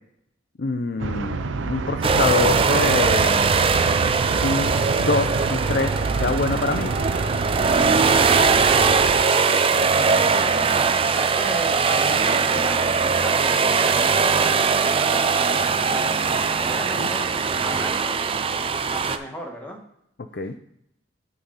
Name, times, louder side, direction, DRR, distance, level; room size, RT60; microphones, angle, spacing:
voice 1, 0.6-3.5 4.4-4.7 5.0-6.9 17.0-17.1 20.3-20.5, left 3 dB, 55° left, 7 dB, 0.5 m, -25 dB
sound 1, 1.0-9.2, right 4 dB, 80° right, 0.5 m, -27 dB
sound 2, 2.0-19.2, right 5 dB, 30° right, 0.4 m, -21 dB
voice 2, 9.8-18.2 18.8-19.8, equal, 10° left, 0 dB, 1.4 m, -37 dB
8.7 x 4.0 x 5.5 m, 0.77 s
head